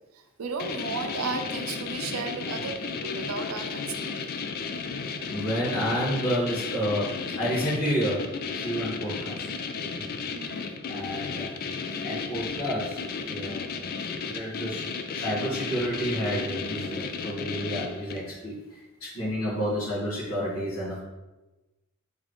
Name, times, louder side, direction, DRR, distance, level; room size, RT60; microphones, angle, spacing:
voice 1, 0.1-4.1 10.3-10.7 11.9-12.1, right 4 dB, 75° right, 5 dB, 0.5 m, -34 dB
sound 1, 0.6-18.3, left 5 dB, 45° left, 0.3 m, -34 dB
voice 2, 5.2-7.1 7.4-8.3 8.5-9.5 9.9-10.0 10.4-10.6 10.9-11.5 12.0-13.0 13.2-13.7 14.3-14.8 15.1-21.0, equal, 75° left, -8 dB, 1.4 m, -30 dB
4.2 x 3.5 x 3.0 m, 1.1 s
head